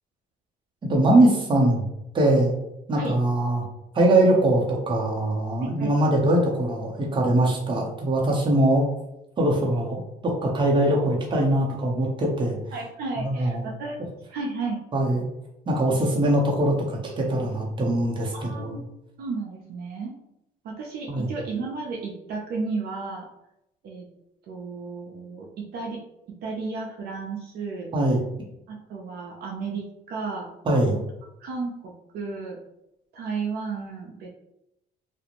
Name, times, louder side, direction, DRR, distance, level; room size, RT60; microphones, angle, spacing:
voice 1, 0.8-1.8 2.1-2.5 2.9-3.6 3.9-8.9 9.4-12.6 13.2-13.7 14.9-15.3 15.7-18.8 21.1-21.3 27.9-28.2 30.7-31.0, right 1 dB, 30° right, -2 dB, 0.7 m, -22 dB
voice 2, 5.6-5.9 12.7-14.0 14.3-14.8 18.3-18.9 19.2-20.1 20.6-23.3 23.8-24.1 24.5-26.0 26.4-27.9 28.7-30.5 31.4-32.6 33.1-34.3, right 4 dB, 65° right, 0 dB, 0.5 m, -33 dB
2.5 x 2.1 x 2.9 m, 0.85 s
cardioid pair, 110°, 17 cm